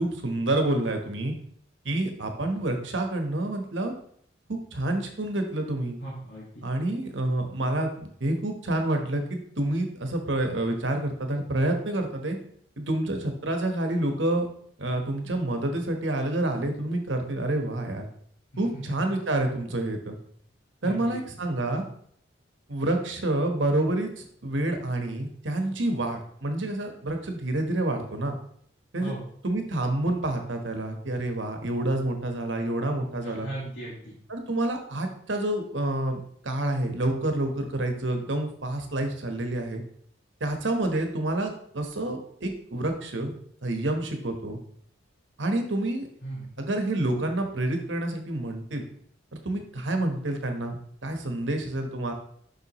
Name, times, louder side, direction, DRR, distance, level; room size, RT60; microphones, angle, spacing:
voice 1, 0.0-1.3 1.8-3.9 4.5-6.0 6.6-12.4 12.8-14.5 14.8-18.1 18.6-20.2 20.8-21.8 22.7-28.3 28.9-29.1 29.4-33.5 34.3-36.2 36.4-39.8 40.4-43.3 43.6-44.6 45.4-46.1 46.6-48.8 49.4-52.1, right 1 dB, 80° right, 5 dB, 1.2 m, -28 dB
voice 2, 6.0-6.7 18.7-18.9 20.8-21.2 29.0-29.2 33.2-34.2 46.2-46.5, right 1 dB, 65° left, -6 dB, 1.8 m, -37 dB
7.0 x 5.7 x 3.0 m, 0.63 s
head